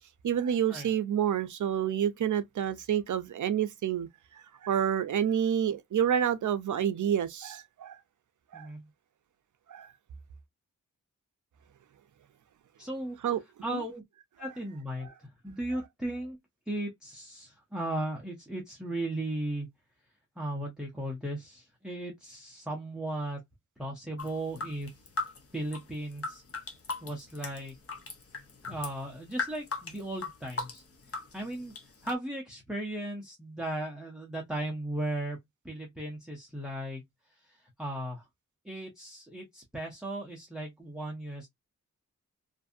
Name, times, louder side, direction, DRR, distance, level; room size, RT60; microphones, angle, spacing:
voice 1, 0.2-8.0 8.5-8.7 9.7-9.9 13.2-13.4 13.7-13.8, right 9 dB, 65° right, 0.5 m, -29 dB
voice 2, 8.5-8.9 12.8-13.2 13.6-14.0 14.4-16.4 16.7-19.7 20.4-23.4 23.8-24.9 25.5-26.4 27.0-27.8 28.7-30.8 31.3-31.7 32.0-35.4 35.6-37.0 37.4-38.3 38.6-41.5, right 1 dB, ahead, 0.5 m, -36 dB
sound 1, 24.2-32.1, left 3 dB, 45° left, 0.6 m, -38 dB
2.6 x 2.5 x 2.4 m
wide cardioid pair, 170°, 33 cm